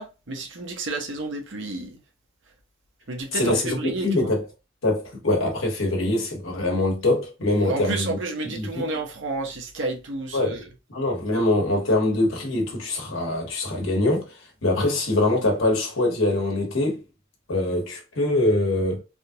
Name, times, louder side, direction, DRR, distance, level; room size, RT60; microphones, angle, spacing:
voice 1, 0.0-2.0 3.1-4.3 7.7-10.7, right 2 dB, 65° right, 0.8 m, -31 dB
voice 2, 3.3-4.4 4.8-8.2 8.4-8.8 10.3-10.6 10.9-17.0 17.5-19.0, left 2 dB, 80° left, 1.3 m, -23 dB
3.4 x 2.4 x 2.7 m
head